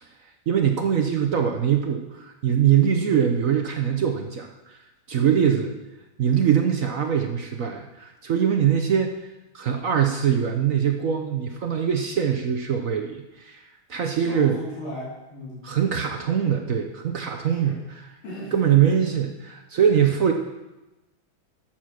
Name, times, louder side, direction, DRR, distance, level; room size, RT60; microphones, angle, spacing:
voice 1, 0.5-4.8 5.1-5.7 6.2-9.1 9.5-13.6 13.9-14.6 15.6-18.0 18.5-20.3, right 8 dB, 60° right, 4 dB, 0.9 m, -22 dB
voice 2, 14.2-15.7 17.4-17.8 18.2-18.5, left 1 dB, 85° left, -7 dB, 3.6 m, -36 dB
12.0 x 7.5 x 6.3 m, 1.0 s
omnidirectional pair, 2.3 m